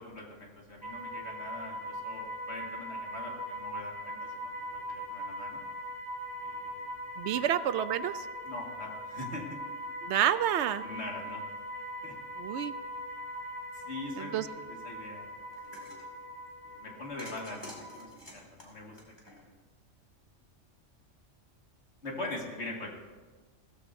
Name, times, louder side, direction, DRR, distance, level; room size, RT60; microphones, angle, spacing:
voice 1, 0.0-5.6 6.4-6.9 7.3-7.4 8.4-9.6 10.8-11.4 12.0-12.2 13.7-14.4 14.7-15.3 15.6-16.0 16.6-19.0 19.2-19.5 22.0-22.9, left 2 dB, 65° left, -1 dB, 2.3 m, -43 dB
sound 1, 0.8-18.1, equal, 20° right, 2.5 m, -41 dB
voice 2, 7.2-8.3 10.0-10.8 12.4-12.7 14.2-14.5, right 10 dB, 70° right, 14 dB, 0.8 m, -29 dB
sound 2, 15.5-16.0 17.2-19.7, left 1 dB, 20° left, 2.4 m, -48 dB
16.5 x 14.0 x 2.7 m, 1.4 s
omnidirectional pair, 1.3 m